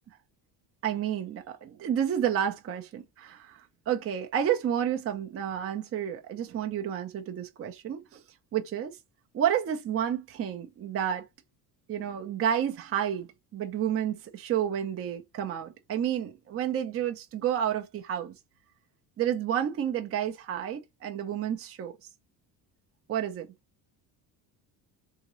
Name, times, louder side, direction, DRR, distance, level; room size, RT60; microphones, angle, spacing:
voice 1, 0.8-8.2 8.5-9.0 9.3-11.2 11.9-13.3 13.5-18.3 19.2-22.0 23.1-23.5, right 9 dB, 35° right, 0.5 m, -30 dB
3.7 x 2.8 x 3.0 m
cardioid pair, 140°, 42 cm